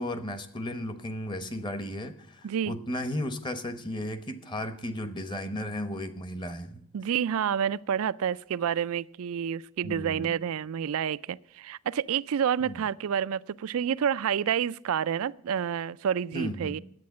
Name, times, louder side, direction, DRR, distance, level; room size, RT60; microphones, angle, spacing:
voice 1, 0.0-6.8 9.8-10.3 12.6-12.7 16.3-16.8, equal, 20° left, 0.9 m, -34 dB
voice 2, 2.4-2.7 6.9-16.8, right 8 dB, 65° right, 0.3 m, -29 dB
10.5 x 8.5 x 7.1 m
head